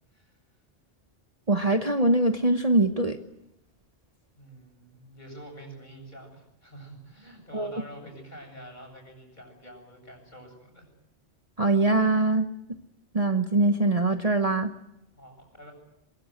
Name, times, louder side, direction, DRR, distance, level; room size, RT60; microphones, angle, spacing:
voice 1, 1.5-3.2 7.5-7.7 11.6-12.5 13.1-14.7, right 2 dB, 35° right, 6 dB, 1.1 m, -23 dB
voice 2, 4.4-10.9 15.1-15.7, right 1 dB, 40° left, 3 dB, 8.2 m, -46 dB
23.5 x 23.0 x 7.9 m, 0.84 s
omnidirectional pair, 1.2 m